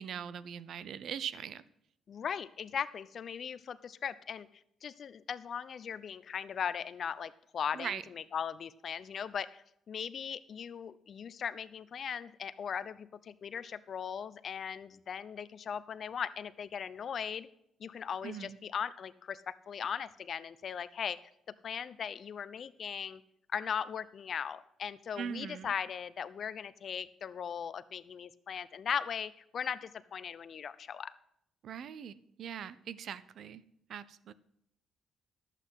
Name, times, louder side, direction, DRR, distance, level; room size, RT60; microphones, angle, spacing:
voice 1, 0.0-1.6 7.7-8.0 18.2-18.6 25.2-25.7 31.6-33.6 33.9-34.3, right 8 dB, 65° right, 17 dB, 0.6 m, -41 dB
voice 2, 2.1-4.5 4.8-17.5 17.8-21.2 21.6-23.2 23.5-31.1, left 7 dB, 55° left, 16 dB, 0.6 m, -38 dB
11.5 x 8.3 x 5.7 m, 0.75 s
cardioid pair, 90°, 0 cm